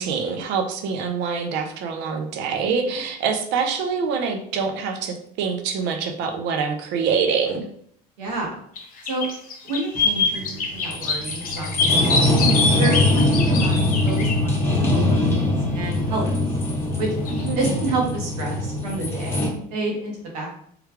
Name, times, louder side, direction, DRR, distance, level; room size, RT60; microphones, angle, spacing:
voice 1, 0.0-7.7 12.4-12.7 17.4-17.8, right 5 dB, 60° right, 5 dB, 0.7 m, -25 dB
voice 2, 8.2-8.6 9.0-9.3 9.6-12.3 12.8-15.4 15.7-16.3 17.0-17.1 17.6-20.6, right 3 dB, 90° right, -1 dB, 1.2 m, -29 dB
sound 1, 8.8-8.9 9.1-14.4 17.3-17.4, left 4 dB, 45° left, 0.9 m, -24 dB
sound 2, 10.0-19.5, left 1 dB, 10° left, 0.9 m, -22 dB
3.3 x 2.2 x 3.5 m, 0.64 s
supercardioid pair, 95°, 20 cm